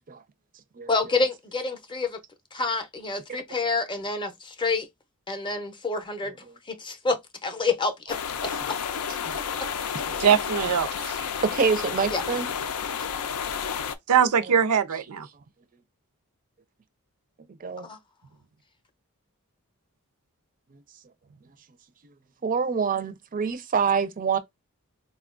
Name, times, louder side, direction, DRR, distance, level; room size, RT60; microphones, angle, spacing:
voice 1, 0.9-2.2 2.5-4.9 5.3-6.3 6.7-8.8 9.3-9.4 12.1-12.2 17.8-18.0, left 3 dB, 20° left, 0.6 m, -28 dB
sound 1, 8.1-13.9, left 7 dB, 85° left, 0.5 m, -31 dB
voice 2, 10.2-11.2 14.1-15.3, right 7 dB, 85° right, 0.5 m, -22 dB
voice 3, 11.2-12.5 17.6-17.9 22.4-24.4, right 5 dB, 40° right, 0.5 m, -26 dB
4.1 x 2.2 x 2.4 m
head